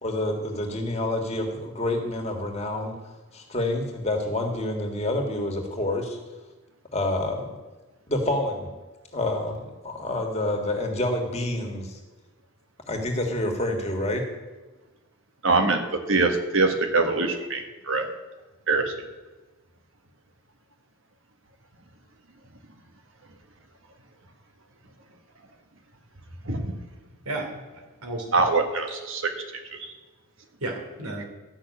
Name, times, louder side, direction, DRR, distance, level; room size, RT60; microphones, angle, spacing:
voice 1, 0.0-2.9 3.3-6.2 6.9-7.4 8.1-8.7 9.1-12.0 12.9-14.2, left 1 dB, 30° left, 2 dB, 1.9 m, -28 dB
voice 2, 15.4-18.1 18.7-18.9 26.4-26.8 28.3-29.3 29.7-29.9, right 3 dB, 60° right, 5 dB, 1.6 m, -24 dB
voice 3, 27.2-28.5 28.9-29.0 30.6-31.3, right 2 dB, 85° right, 2 dB, 3.0 m, -34 dB
13.0 x 6.3 x 8.6 m, 1.2 s
head